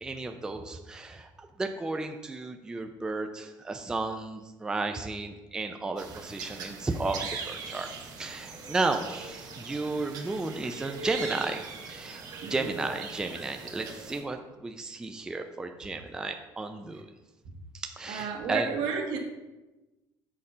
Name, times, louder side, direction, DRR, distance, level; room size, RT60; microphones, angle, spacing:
voice 1, 0.0-7.9 8.2-12.2 12.5-17.0 17.7-18.7, right 3 dB, 10° right, 5 dB, 0.4 m, -33 dB
sound 1, 6.0-14.2, right 4 dB, 50° right, 1.3 m, -41 dB
voice 2, 12.4-12.7 18.1-19.2, right 6 dB, 70° right, 2 dB, 1.4 m, -32 dB
6.5 x 4.9 x 5.6 m, 1.1 s
cardioid pair, 160°, 8 cm